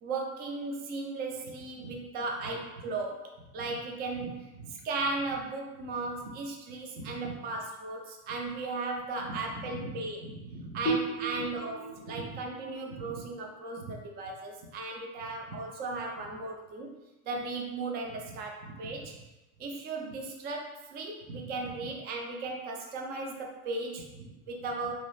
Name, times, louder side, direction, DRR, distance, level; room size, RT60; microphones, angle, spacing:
voice 1, 0.0-3.2 3.5-4.4 4.8-10.2 10.7-13.8 14.2-17.0 17.3-19.1 19.6-24.0 24.5-24.9, right 3 dB, 25° right, 1 dB, 0.4 m, -36 dB
voice 2, 4.2-4.7 5.8-6.2 7.0-7.3 8.3-8.4 9.2-11.0 11.4-11.5 11.9-12.4 12.9-13.2 13.8-13.9 15.2-15.6 18.2-19.1 21.3-21.7 24.1-24.7, right 2 dB, 85° right, -1 dB, 0.8 m, -44 dB
sound 1, 10.8-14.2, right 2 dB, 60° left, 0.5 m, -36 dB
2.7 x 2.3 x 3.3 m, 1.0 s
hypercardioid pair, 105°, 43 cm